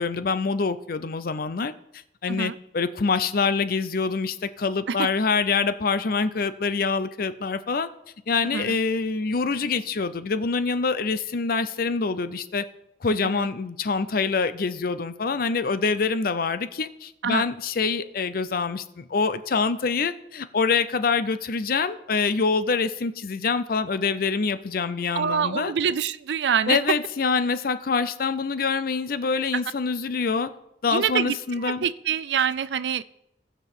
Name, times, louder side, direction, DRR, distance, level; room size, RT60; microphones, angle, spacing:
voice 1, 0.0-1.7 2.2-7.9 8.3-12.7 13.0-25.7 26.7-30.5 30.8-31.8, left 4 dB, 55° left, 12 dB, 0.6 m, -25 dB
voice 2, 25.2-27.0 30.9-31.4 31.6-33.0, right 7 dB, 75° right, 16 dB, 0.4 m, -25 dB
17.5 x 6.0 x 3.6 m, 0.80 s
head